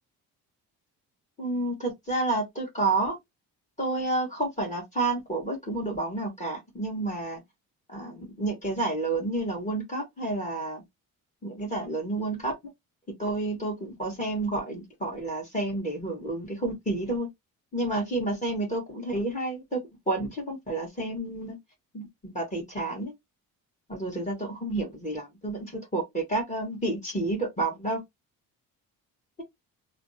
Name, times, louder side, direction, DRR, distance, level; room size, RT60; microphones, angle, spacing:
voice 1, 1.4-3.2 3.8-7.4 7.9-10.8 11.4-12.5 13.2-17.3 17.7-19.8 20.1-21.6 21.9-23.1 23.9-28.0, right 2 dB, 20° left, 1.5 m, -30 dB
3.1 x 2.1 x 2.8 m
cardioid pair, 95°, 35 cm